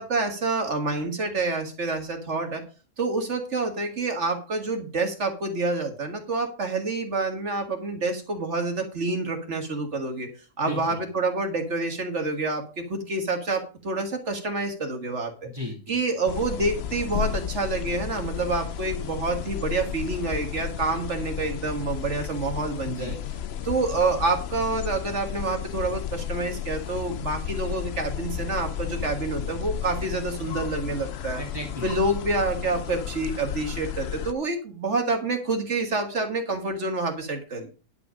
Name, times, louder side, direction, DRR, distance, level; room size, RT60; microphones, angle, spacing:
voice 1, 0.0-2.6 3.0-10.3 10.6-15.5 15.9-23.1 23.6-31.4 31.8-37.7, right 3 dB, 60° right, 5 dB, 1.9 m, -28 dB
voice 2, 10.6-11.0 15.4-16.0 22.9-23.2 31.4-32.1, left 1 dB, 20° right, -1 dB, 2.3 m, -35 dB
sound 1, 16.3-34.3, left 10 dB, 60° left, 0.8 m, -33 dB
10.5 x 8.0 x 5.0 m, 0.34 s
omnidirectional pair, 1.4 m